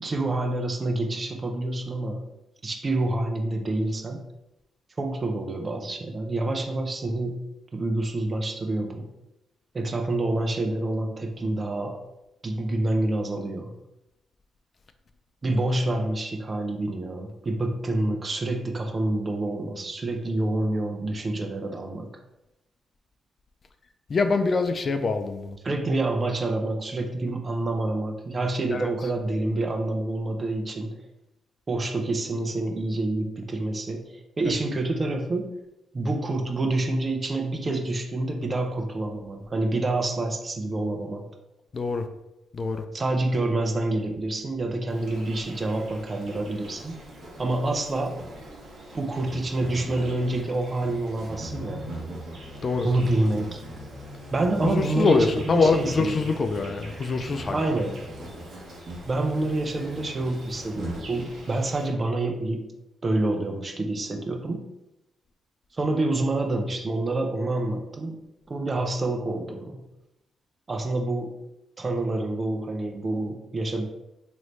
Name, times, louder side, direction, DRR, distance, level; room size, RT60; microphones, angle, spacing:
voice 1, 0.0-2.3 2.6-4.3 5.0-7.5 7.7-9.1 9.7-12.0 12.4-13.7 15.4-22.1 25.6-31.1 31.7-35.5 35.9-41.3 42.9-47.0 47.4-48.2 48.9-51.9 52.8-53.6 54.3-56.3 57.5-58.0 59.1-62.7 63.0-64.7 65.7-68.2 68.5-69.8 70.7-71.4 71.8-73.8, right 2 dB, 40° right, 3 dB, 0.6 m, -27 dB
voice 2, 24.1-25.6 28.7-28.9 41.7-42.1 42.5-42.8 52.6-52.9 54.6-57.6, left 4 dB, 50° left, 7 dB, 0.3 m, -24 dB
Insect, 44.9-61.9, right 1 dB, 65° right, 1.1 m, -40 dB
3.1 x 2.6 x 3.1 m, 0.91 s
hypercardioid pair, 45°, 0 cm